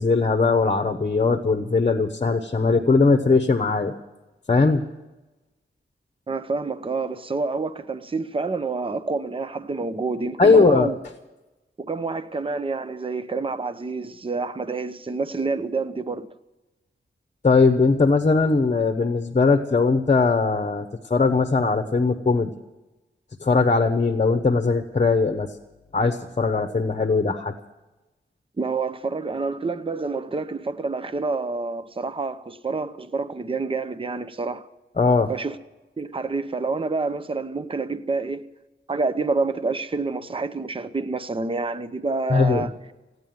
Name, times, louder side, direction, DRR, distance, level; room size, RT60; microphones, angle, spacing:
voice 1, 0.0-3.9 4.5-4.9 10.4-10.9 17.4-22.5 23.4-25.5 25.9-27.5 35.0-35.3 42.3-42.7, left 4 dB, 35° left, 1.0 m, -20 dB
voice 2, 6.3-11.0 11.8-16.3 28.6-34.6 35.3-35.6 36.0-38.5 38.9-42.7, right 3 dB, 25° right, 0.7 m, -28 dB
16.0 x 9.7 x 9.3 m
wide cardioid pair, 90°, 20 cm